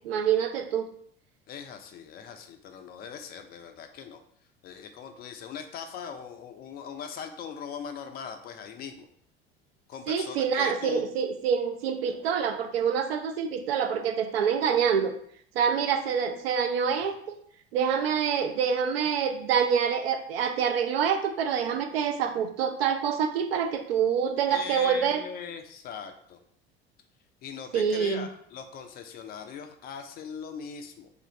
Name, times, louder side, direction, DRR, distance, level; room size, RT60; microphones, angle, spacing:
voice 1, 0.0-0.9 10.1-15.1 15.6-17.1 17.7-25.2 27.7-28.3, right 7 dB, 70° right, 7 dB, 0.5 m, -26 dB
voice 2, 1.5-4.2 4.6-9.1 9.9-11.1 24.5-26.4 27.4-31.1, left 7 dB, 30° left, 6 dB, 0.4 m, -40 dB
2.5 x 2.4 x 4.0 m, 0.63 s
figure-of-eight pair, 65°, 32 cm